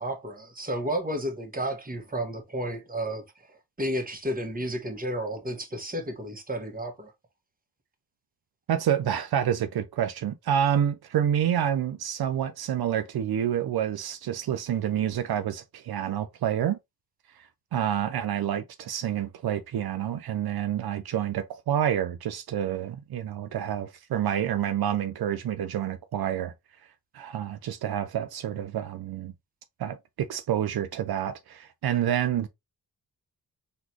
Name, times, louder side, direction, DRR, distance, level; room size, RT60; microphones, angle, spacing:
voice 1, 0.0-3.3 3.8-7.1, right 1 dB, 25° right, 1.4 m, -32 dB
voice 2, 8.7-16.8 17.7-26.5 27.1-29.3 29.8-32.5, right 9 dB, 85° right, 0.6 m, -28 dB
4.0 x 3.3 x 3.0 m
cardioid pair, 75°, 36 cm